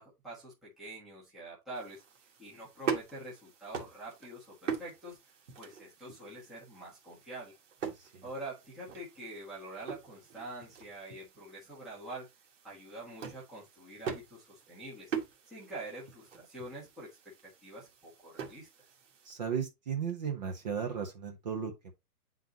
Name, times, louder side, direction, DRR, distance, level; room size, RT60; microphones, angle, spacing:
voice 1, 0.0-2.0 2.4-7.6 8.2-12.3 12.6-15.1 15.4-18.7, right 1 dB, ahead, 1.1 m, -46 dB
sound 1, 1.7-19.3, right 7 dB, 50° right, 1.8 m, -43 dB
voice 2, 19.2-21.9, right 7 dB, 30° right, 1.0 m, -35 dB
9.0 x 3.9 x 2.9 m
hypercardioid pair, 170°, 46 cm